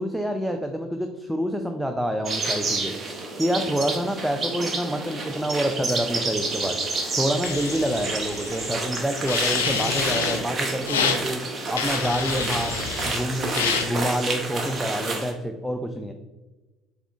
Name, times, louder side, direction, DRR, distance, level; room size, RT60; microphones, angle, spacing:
voice 1, 0.0-3.0 3.4-6.8 7.2-11.4 11.7-12.8 13.1-16.1, equal, 5° right, 4 dB, 0.3 m, -27 dB
sound 1, 2.2-15.3, right 3 dB, 35° right, 0.7 m, -30 dB
sound 2, 3.6-13.7, right 1 dB, 30° left, 1.4 m, -48 dB
sound 3, 7.4-8.7 9.2-10.4 10.8-11.2 11.7-13.2 13.5-13.9, left 6 dB, 80° left, 0.3 m, -27 dB
3.5 x 3.5 x 2.4 m, 1.2 s
figure-of-eight pair, 60°, 0 cm